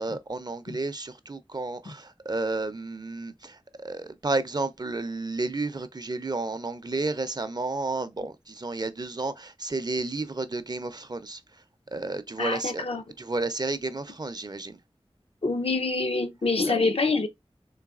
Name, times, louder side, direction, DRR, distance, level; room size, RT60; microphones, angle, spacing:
voice 1, 0.0-11.4 11.9-12.8 13.2-14.8 16.7-16.8, right 3 dB, 40° right, 0.5 m, -31 dB
voice 2, 12.4-13.0 15.4-17.3, left 3 dB, 70° left, 0.6 m, -26 dB
3.9 x 3.0 x 2.3 m
wide cardioid pair, 55°, 10 cm